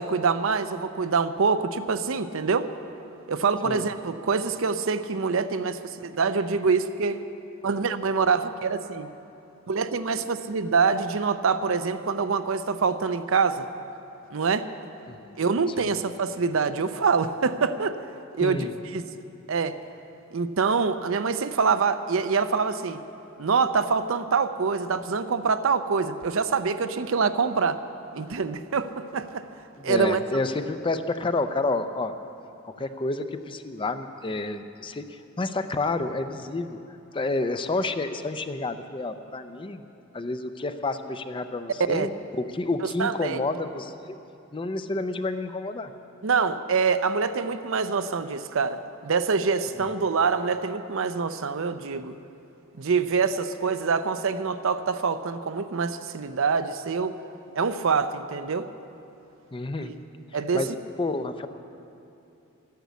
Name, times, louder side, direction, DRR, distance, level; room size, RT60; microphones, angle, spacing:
voice 1, 0.0-2.7 3.3-7.2 7.6-9.1 9.7-13.7 14.3-14.7 15.4-18.0 18.4-19.0 19.5-19.8 20.3-23.0 23.4-27.8 28.1-29.4 29.8-30.2 41.9-42.1 42.8-43.4 46.2-52.2 52.8-57.2 57.6-58.7 59.8-59.9 60.3-60.6, right 5 dB, 65° right, 11 dB, 0.6 m, -25 dB
voice 2, 18.4-18.7 29.8-32.1 32.6-36.8 37.1-39.8 40.1-44.2 44.5-45.9 59.5-59.9 60.3-61.5, left 2 dB, 25° left, 9 dB, 0.5 m, -30 dB
13.0 x 10.5 x 8.2 m, 2.8 s
head